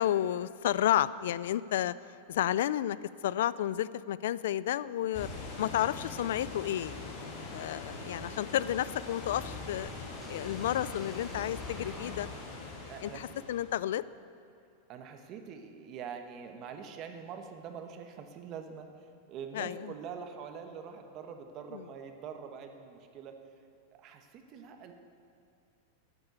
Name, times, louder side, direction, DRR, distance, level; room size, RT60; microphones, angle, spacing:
voice 1, 0.0-1.9 2.3-3.0 3.2-5.3 5.6-6.9 7.5-9.9 10.3-12.3 13.0-14.0 19.5-19.9 21.7-21.8, left 12 dB, 75° left, 18 dB, 0.3 m, -31 dB
sound 1, 5.1-13.8, left 3 dB, 50° left, 2.8 m, -42 dB
sound 2, 10.2-14.1, equal, 5° right, 1.4 m, -52 dB
voice 2, 12.9-13.5 14.9-23.3 23.9-24.9, right 6 dB, 35° right, 6 dB, 1.1 m, -44 dB
10.5 x 8.7 x 8.0 m, 2.4 s
supercardioid pair, 145°, 0 cm